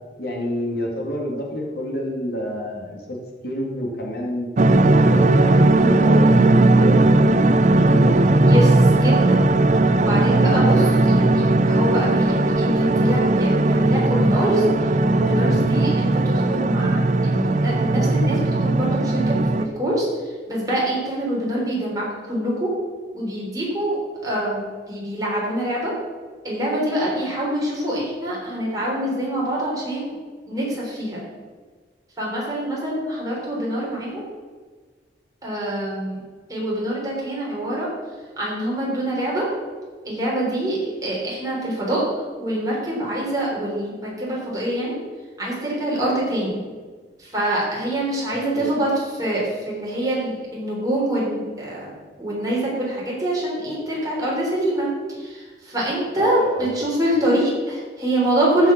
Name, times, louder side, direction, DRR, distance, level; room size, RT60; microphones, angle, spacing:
voice 1, 0.2-3.2 3.4-4.5 4.8-8.2 48.5-48.8 56.2-56.8, left 1 dB, 60° left, -1 dB, 2.3 m, -29 dB
sound 1, 4.6-19.7, right 2 dB, 45° right, 0.5 m, -17 dB
voice 2, 8.4-9.4 10.0-14.7 15.1-20.1 20.5-22.7 23.1-25.9 26.4-30.1 30.5-31.2 32.2-34.2 35.4-36.2 36.5-37.9 38.4-39.5 40.0-42.0 42.4-45.0 45.4-46.6 47.2-51.9 52.2-54.9 55.2-58.7, right 1 dB, 20° right, -5 dB, 3.8 m, -25 dB
14.0 x 5.6 x 6.0 m, 1.4 s
head